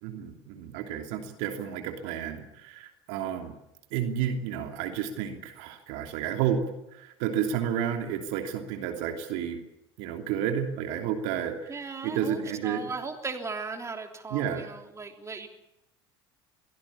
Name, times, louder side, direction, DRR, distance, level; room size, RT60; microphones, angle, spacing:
voice 1, 0.0-3.5 3.9-6.6 6.9-9.6 10.0-11.8 12.0-12.9 14.3-14.6, right 9 dB, 65° right, 4 dB, 3.0 m, -31 dB
voice 2, 11.7-15.5, right 4 dB, 20° right, 4 dB, 3.4 m, -37 dB
23.5 x 17.0 x 8.7 m, 0.86 s
hypercardioid pair, 75°, 14 cm